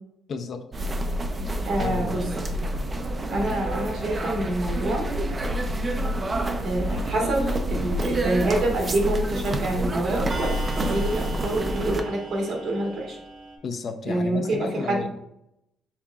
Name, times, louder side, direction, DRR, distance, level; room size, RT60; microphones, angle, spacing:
voice 1, 0.3-0.6 1.8-2.2 13.6-15.1, left 5 dB, 45° left, 7 dB, 0.5 m, -32 dB
sound 1, 0.7-12.0, right 1 dB, 25° right, 0.5 m, -28 dB
voice 2, 1.6-2.2 3.3-5.1 6.6-10.5 10.9-13.2 14.1-15.0, right 1 dB, 60° right, 0 dB, 1.4 m, -27 dB
Clock, 8.0-8.1 9.1-9.2 9.4-9.7 10.3-13.6, right 2 dB, 40° right, 1.1 m, -38 dB
5.5 x 3.5 x 2.4 m, 0.77 s
cardioid pair, 110°, 0 cm